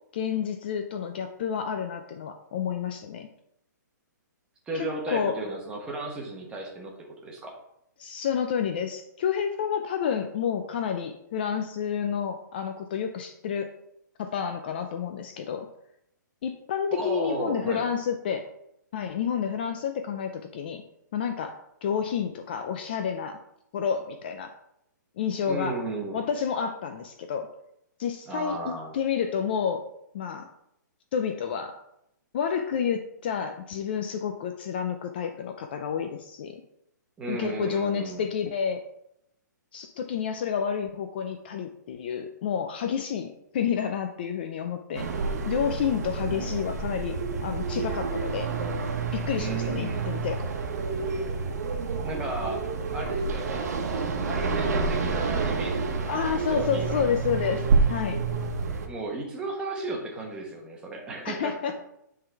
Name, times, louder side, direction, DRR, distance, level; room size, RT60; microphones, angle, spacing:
voice 1, 0.1-3.3 4.7-5.4 8.0-13.7 14.2-15.7 16.4-18.5 18.9-20.8 21.1-23.4 23.7-24.5 25.2-25.8 26.1-27.5 28.0-29.9 30.1-30.5 31.1-31.8 32.3-36.6 37.3-38.8 39.7-48.5 49.1-50.4 56.1-58.2 61.2-61.7, left 7 dB, 30° left, 7 dB, 0.4 m, -30 dB
voice 2, 4.7-7.5 16.9-17.9 25.5-26.2 28.3-28.9 37.2-38.3 49.3-50.1 52.0-52.6 52.9-57.0 58.9-61.7, right 2 dB, 10° right, 0 dB, 1.0 m, -34 dB
sound 1, 44.9-58.9, right 4 dB, 55° right, 1.2 m, -28 dB
9.3 x 3.8 x 4.5 m, 0.80 s
hypercardioid pair, 170°, 10 cm